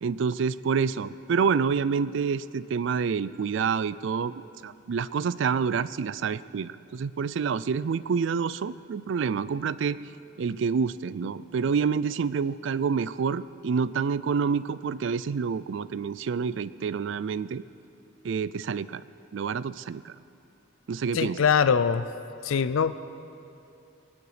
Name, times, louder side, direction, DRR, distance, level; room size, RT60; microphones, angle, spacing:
voice 1, 0.0-4.3 4.6-10.0 10.4-17.6 18.2-19.0 19.3-20.1 20.9-21.4, right 6 dB, 60° right, 17 dB, 0.4 m, -28 dB
voice 2, 21.1-22.1 22.4-22.9, left 6 dB, 80° left, 14 dB, 0.4 m, -22 dB
22.0 x 9.7 x 5.0 m, 2.7 s
head